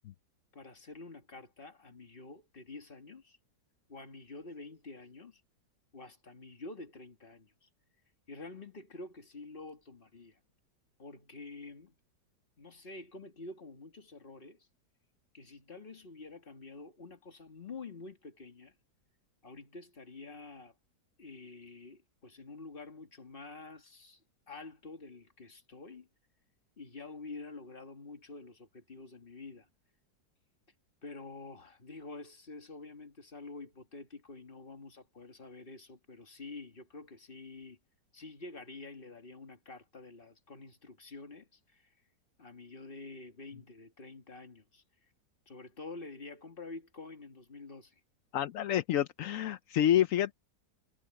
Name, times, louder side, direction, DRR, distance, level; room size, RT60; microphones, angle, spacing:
voice 1, 0.5-3.4 3.9-5.4 5.9-7.7 8.3-10.4 11.0-12.0 12.6-14.7 15.3-18.7 19.4-20.7 21.2-24.2 24.5-26.1 26.8-29.7 31.0-37.8 38.1-41.9 42.4-44.8 45.5-48.0, left 3 dB, 30° left, 2.1 m, -48 dB
voice 2, 48.3-50.3, left 11 dB, 65° left, 0.8 m, -28 dB
omnidirectional pair, 1.9 m